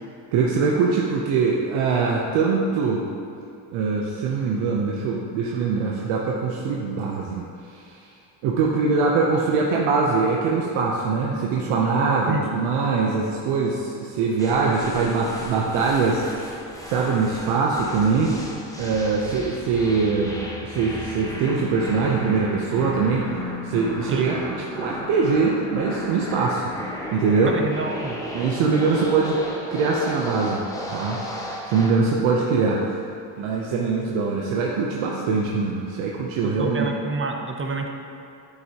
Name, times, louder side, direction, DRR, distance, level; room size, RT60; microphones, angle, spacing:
voice 1, 0.3-3.0 3.7-8.1 8.4-16.3 16.8-18.4 18.8-20.4 20.6-26.7 27.1-27.5 28.3-29.4 29.7-30.6 30.9-31.2 31.7-32.8 33.4-36.9, right 4 dB, 90° right, -2 dB, 0.8 m, -22 dB
sound 1, 14.4-32.1, left 1 dB, 5° left, 0.8 m, -35 dB
voice 2, 27.5-28.2 36.4-37.9, right 3 dB, 25° right, 3 dB, 0.6 m, -28 dB
9.5 x 4.8 x 2.8 m, 2.6 s
cardioid pair, 105°, 48 cm